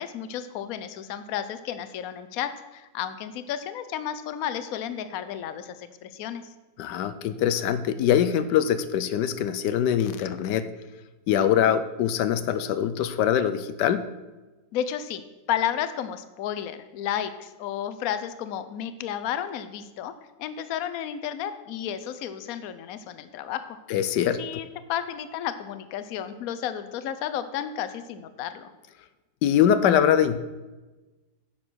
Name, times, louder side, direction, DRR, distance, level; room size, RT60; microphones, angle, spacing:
voice 1, 0.0-6.4 14.7-15.2 15.5-20.1 20.4-23.8 24.4-28.7, left 10 dB, 65° left, 11 dB, 1.1 m, -32 dB
voice 2, 6.8-10.7 11.3-14.0 23.9-24.4 29.4-30.4, left 9 dB, 85° left, 12 dB, 1.3 m, -23 dB
10.5 x 7.0 x 6.2 m, 1.2 s
omnidirectional pair, 1.8 m